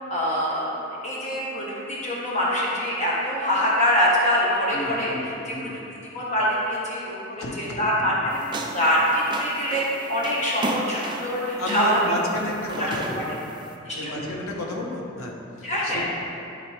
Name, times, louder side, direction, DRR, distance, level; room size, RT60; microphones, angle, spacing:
voice 1, 0.1-0.7 1.0-5.7 6.1-12.0 12.7-12.9 13.1-13.2 13.8-14.2 15.6-16.1, equal, 35° left, -6 dB, 1.5 m, -24 dB
voice 2, 4.7-5.7 7.4-8.1 11.1-11.2 11.6-13.4 13.9-16.1, left 1 dB, 90° left, -1 dB, 1.1 m, -32 dB
sound 1, 8.3-13.7, right 2 dB, 20° right, 0.4 m, -35 dB
11.5 x 4.0 x 3.5 m, 2.9 s
head